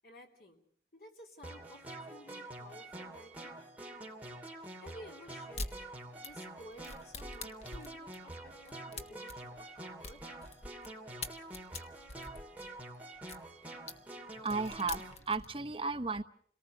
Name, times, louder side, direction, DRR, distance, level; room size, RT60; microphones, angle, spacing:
voice 1, 0.0-0.6 0.9-3.5 4.5-10.2, equal, 55° left, 2 dB, 3.4 m, -54 dB
sound 1, 1.4-15.1, right 1 dB, 10° right, 2.7 m, -47 dB
sound 2, 5.5-5.7 6.2-10.9 11.2-13.4 13.9-14.0 14.3-15.5, left 3 dB, 35° left, 1.2 m, -44 dB
voice 2, 14.4-16.2, right 4 dB, 30° right, 6 dB, 0.9 m, -34 dB
27.5 x 19.0 x 6.8 m, 0.62 s
head